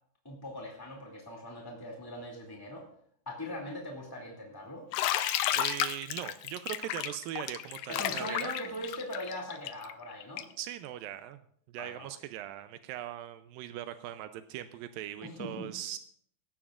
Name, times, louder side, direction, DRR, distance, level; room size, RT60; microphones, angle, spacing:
voice 1, 0.2-2.8 3.2-4.9 7.9-10.5 11.8-12.1 15.2-15.7, left 1 dB, 10° left, -2 dB, 1.3 m, -41 dB
Bathtub (filling or washing), 4.9-10.6, left 12 dB, 80° left, 2.0 m, -32 dB
voice 2, 5.5-8.5 10.6-11.4 11.7-16.0, right 12 dB, 85° right, 9 dB, 2.1 m, -40 dB
19.0 x 16.0 x 2.5 m, 0.63 s
omnidirectional pair, 4.7 m